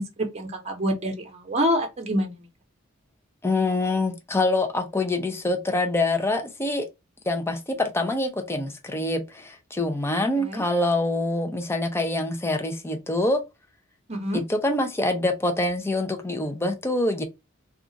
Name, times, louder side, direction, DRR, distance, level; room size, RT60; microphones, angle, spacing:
voice 1, 0.0-2.5 10.4-10.6 14.1-14.4, equal, 30° right, 0.9 m, -27 dB
voice 2, 3.4-6.9 7.3-13.4 14.3-17.2, left 2 dB, 10° left, 0.5 m, -25 dB
2.4 x 2.4 x 3.8 m
head